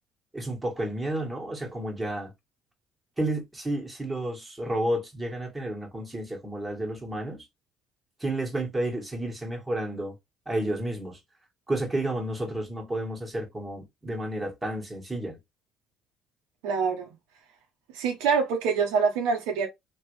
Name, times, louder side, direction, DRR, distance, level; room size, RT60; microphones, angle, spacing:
voice 1, 0.3-2.3 3.2-7.5 8.2-10.2 10.4-11.2 11.7-15.4, right 1 dB, 15° right, 1.5 m, -31 dB
voice 2, 16.6-17.1 17.9-19.7, right 5 dB, 80° right, 0.8 m, -25 dB
3.2 x 2.5 x 3.1 m
supercardioid pair, 65°, 0 cm